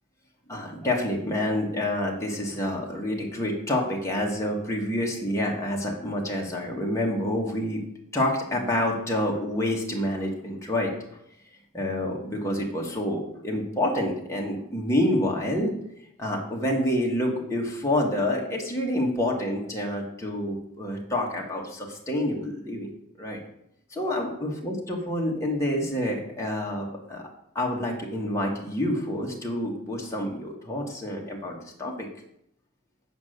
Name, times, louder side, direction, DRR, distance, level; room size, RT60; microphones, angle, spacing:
voice 1, 0.5-7.8 8.1-10.9 11.7-15.7 16.2-22.9 23.2-23.4 23.9-27.2 27.5-32.1, left 1 dB, 15° left, -2 dB, 1.5 m, -28 dB
8.2 x 5.3 x 6.6 m, 0.75 s
head